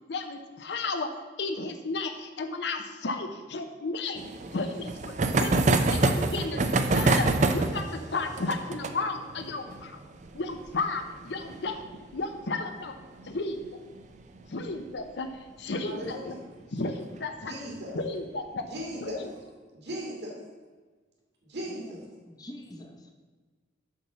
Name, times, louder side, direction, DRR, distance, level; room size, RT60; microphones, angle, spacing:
voice 1, 0.1-1.1 1.4-4.2 4.5-6.6 6.9-10.0 10.3-11.8 12.1-13.0 13.2-13.8 14.5-15.3 15.6-16.3 16.7-17.5 17.9-18.6 19.0-19.3, left 3 dB, 65° left, 6 dB, 0.7 m, -33 dB
sound 1, 4.2-13.4 13.6-13.7 14.0-14.1 14.4-14.5 15.8-16.1 16.8-17.2, right 3 dB, 40° right, 0.5 m, -27 dB
voice 2, 15.8-16.4 17.5-18.0 18.7-19.2 19.7-20.4 21.4-22.0, equal, 60° right, -3 dB, 2.7 m, -37 dB
voice 3, 21.7-23.1, left 1 dB, 20° left, 3 dB, 0.8 m, -45 dB
7.3 x 4.3 x 6.8 m, 1.4 s
head